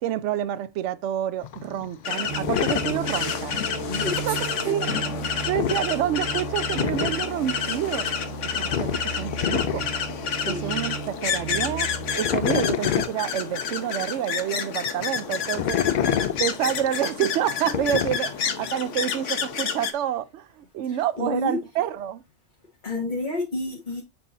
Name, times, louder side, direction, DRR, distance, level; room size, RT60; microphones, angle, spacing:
voice 1, 0.0-3.6 4.3-4.4 4.6-4.9 5.5-8.1 8.4-10.0 10.5-15.8 16.4-22.2, right 11 dB, 75° right, 0.9 m, -28 dB
sound 1, 1.4-14.3 14.8-19.6, left 9 dB, 65° left, 0.4 m, -30 dB
sound 2, 2.1-19.9, left 7 dB, 85° left, 1.2 m, -30 dB
sound 3, 2.3-12.2, right 4 dB, 55° right, 1.3 m, -35 dB
voice 2, 3.8-4.7 10.4-10.8 20.8-21.6 22.8-24.0, left 2 dB, 40° left, 1.8 m, -30 dB
8.4 x 4.7 x 2.6 m
omnidirectional pair, 1.2 m